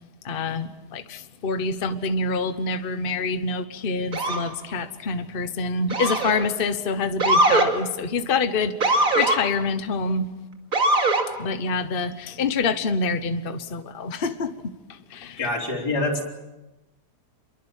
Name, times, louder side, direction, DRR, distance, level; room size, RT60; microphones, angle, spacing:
voice 1, 0.2-10.3 11.4-15.5, left 4 dB, 40° left, 9 dB, 1.2 m, -26 dB
Motor vehicle (road) / Siren, 4.1-4.5 5.9-6.5 7.2-7.7 8.8-9.4 10.7-11.3, right 2 dB, 55° right, 2.8 m, -20 dB
voice 2, 15.4-16.3, left 2 dB, 75° left, -2 dB, 4.2 m, -25 dB
27.0 x 23.0 x 7.4 m, 1.0 s
omnidirectional pair, 1.7 m